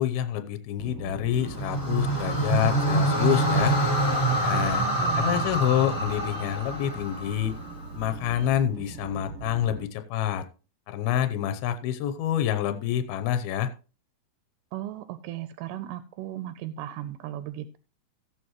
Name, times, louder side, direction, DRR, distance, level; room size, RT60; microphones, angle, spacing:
voice 1, 0.0-3.8 4.4-4.8 5.2-7.5 7.9-10.4 10.9-13.7, left 11 dB, 85° left, 10 dB, 2.6 m, -27 dB
sound 1, 0.8-9.9, right 4 dB, 55° right, 1.7 m, -40 dB
sound 2, 1.4-7.7, right 1 dB, 20° left, 0.5 m, -26 dB
voice 2, 4.5-5.5 14.7-17.8, right 13 dB, 85° right, 12 dB, 2.5 m, -36 dB
16.0 x 7.9 x 3.0 m, 0.34 s
omnidirectional pair, 4.4 m